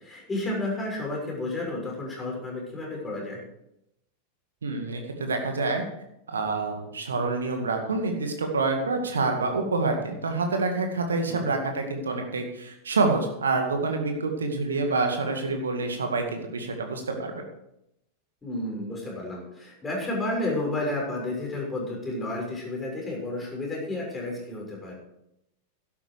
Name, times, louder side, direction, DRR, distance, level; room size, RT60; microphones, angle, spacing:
voice 1, 0.0-3.4 11.3-11.5 18.4-24.9, left 2 dB, 15° left, -2 dB, 6.3 m, -31 dB
voice 2, 4.6-5.8 6.3-17.4, right 3 dB, 70° right, 4 dB, 2.1 m, -27 dB
12.0 x 11.5 x 4.9 m, 0.80 s
figure-of-eight pair, 90°, 0 cm